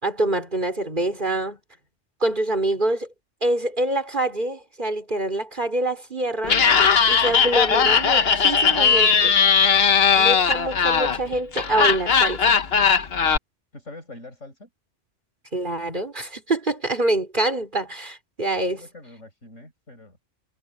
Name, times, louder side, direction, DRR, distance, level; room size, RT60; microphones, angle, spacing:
voice 1, 0.0-1.6 2.2-3.1 3.4-6.6 7.1-9.3 10.2-12.6 15.5-18.8, right 2 dB, 40° right, 4.6 m, -25 dB
Laughter, 6.4-13.4, left 6 dB, 55° left, 1.3 m, -18 dB
voice 2, 13.7-14.7 18.7-20.2, left 2 dB, 80° left, 7.9 m, -43 dB
omnidirectional pair, 1.3 m